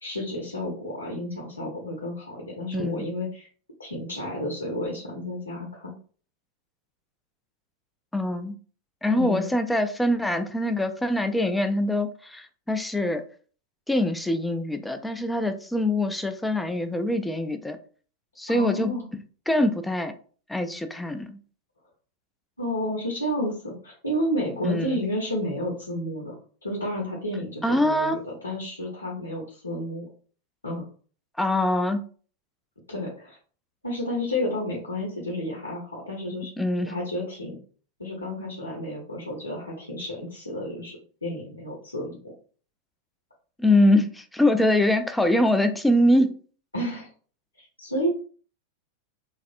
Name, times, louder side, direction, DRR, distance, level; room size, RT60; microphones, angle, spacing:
voice 1, 0.0-3.5 3.8-5.9 9.1-9.5 18.5-19.0 22.6-26.3 26.6-30.0 30.6-30.8 32.9-33.4 33.8-36.5 36.8-37.6 38.0-42.3 46.7-47.1 47.6-48.1, equal, 80° left, -1 dB, 0.8 m, -31 dB
voice 2, 2.7-3.1 8.1-8.5 9.0-13.2 13.9-17.8 18.4-18.9 19.5-20.1 20.5-21.4 24.6-25.0 27.6-28.2 31.4-32.0 36.6-37.0 43.6-46.4, left 1 dB, 5° left, 7 dB, 0.3 m, -23 dB
3.2 x 2.4 x 2.5 m, 0.42 s
figure-of-eight pair, 90°, 0 cm